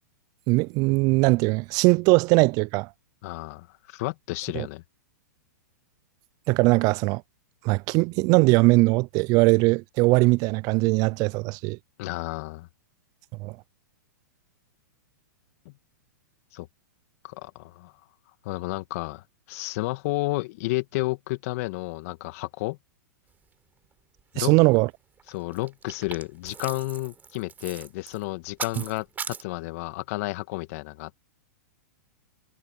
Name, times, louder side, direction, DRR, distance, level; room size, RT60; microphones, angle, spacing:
voice 1, 0.5-2.9 4.5-4.7 6.5-7.2 7.6-11.8 13.4-13.5 24.4-24.9, right 25 dB, 40° right, 0.5 m, -20 dB
voice 2, 3.2-4.8 12.0-12.7 15.7-15.8 16.5-16.7 17.2-17.9 18.4-22.8 24.3-24.5 25.3-31.2, left 22 dB, 50° left, 2.1 m, -31 dB
sound 1, 24.2-24.3 24.5-24.8 25.2-29.4, right 6 dB, 20° right, 4.5 m, -39 dB
hypercardioid pair, 120°, 10 cm